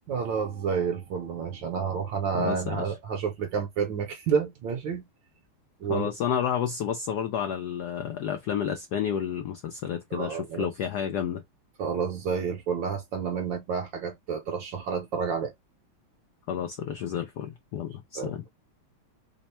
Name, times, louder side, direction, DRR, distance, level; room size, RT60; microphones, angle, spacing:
voice 1, 0.1-5.0 5.8-6.1 10.1-10.7 11.8-15.5 18.2-18.3, right 6 dB, 70° right, 1.3 m, -29 dB
voice 2, 2.3-2.8 5.9-11.4 16.5-18.4, left 9 dB, 90° left, 0.8 m, -30 dB
3.5 x 2.1 x 4.1 m
omnidirectional pair, 2.3 m